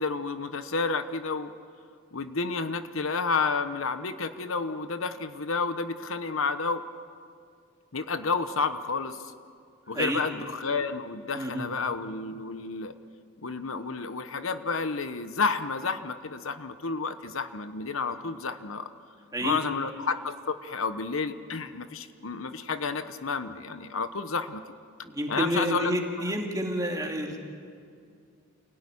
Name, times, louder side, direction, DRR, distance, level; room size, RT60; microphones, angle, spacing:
voice 1, 0.0-1.5 2.1-6.8 7.9-9.2 9.9-12.9 13.4-18.9 19.4-24.6 25.3-25.9, left 4 dB, 70° left, 10 dB, 1.0 m, -30 dB
voice 2, 11.3-11.7 19.3-19.6 25.0-27.4, equal, 15° right, 1 dB, 2.6 m, -29 dB
28.5 x 17.5 x 10.0 m, 2.3 s
head